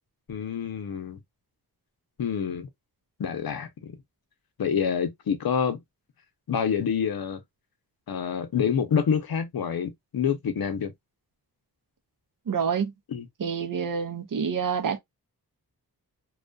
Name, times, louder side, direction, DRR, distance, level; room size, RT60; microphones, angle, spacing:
voice 1, 0.3-1.2 2.2-2.7 3.2-3.9 4.6-5.8 6.5-7.4 8.1-10.9 13.1-13.3, left 7 dB, 65° left, 0.7 m, -27 dB
voice 2, 12.5-12.9 13.4-15.0, right 6 dB, 55° right, 0.6 m, -27 dB
2.3 x 2.2 x 2.4 m
wide cardioid pair, 85°, 38 cm